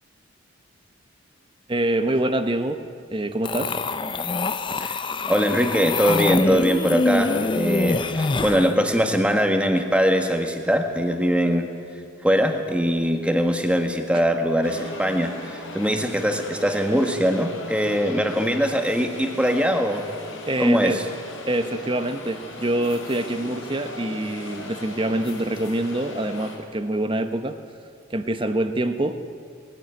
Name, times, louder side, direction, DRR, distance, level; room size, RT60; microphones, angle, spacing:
voice 1, 1.7-2.8 3.1-3.8 14.1-14.2 20.4-21.0 21.5-27.6 28.1-29.2, right 1 dB, 25° right, 9 dB, 1.0 m, -25 dB
sound 1, 3.4-8.7, left 3 dB, 25° left, 0.6 m, -25 dB
voice 2, 5.3-11.7 12.2-20.0 20.6-21.0, equal, 5° right, 5 dB, 1.4 m, -22 dB
sound 2, 14.6-26.6, left 1 dB, 90° left, 4.9 m, -38 dB
20.0 x 14.5 x 9.1 m, 2.2 s
head